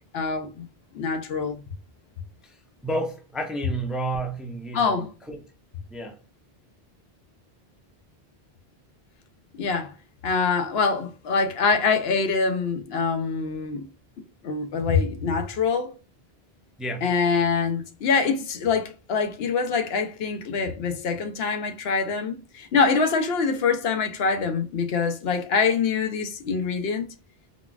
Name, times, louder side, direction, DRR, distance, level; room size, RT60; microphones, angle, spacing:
voice 1, 0.1-0.7 0.9-1.6 4.7-5.1 9.6-9.9 10.2-13.9 14.4-15.9 17.0-27.1, left 5 dB, 75° left, 0.9 m, -24 dB
voice 2, 2.4-5.4 5.9-6.2 16.8-17.0, right 1 dB, ahead, 0.5 m, -31 dB
3.9 x 2.3 x 2.2 m
omnidirectional pair, 1.1 m